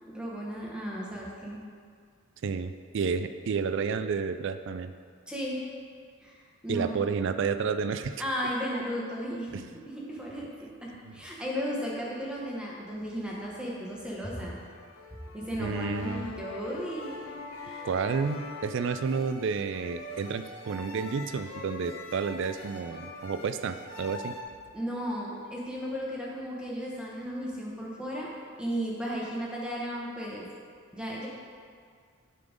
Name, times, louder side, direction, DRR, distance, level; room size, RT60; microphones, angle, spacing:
voice 1, 0.0-1.6 5.3-5.6 6.2-6.4 6.6-7.0 8.2-9.6 9.9-14.6 15.3-17.2 17.6-17.9 24.7-28.3 28.6-30.5 30.9-31.3, equal, 5° right, -4 dB, 0.9 m, -35 dB
voice 2, 2.4-4.9 6.7-8.2 9.5-9.7 11.0-11.2 15.6-16.3 17.8-24.3, right 5 dB, 55° right, 10 dB, 0.3 m, -31 dB
sound 1, 13.9-24.4, left 2 dB, 65° left, 0.8 m, -43 dB
9.4 x 3.8 x 5.1 m, 2.1 s
head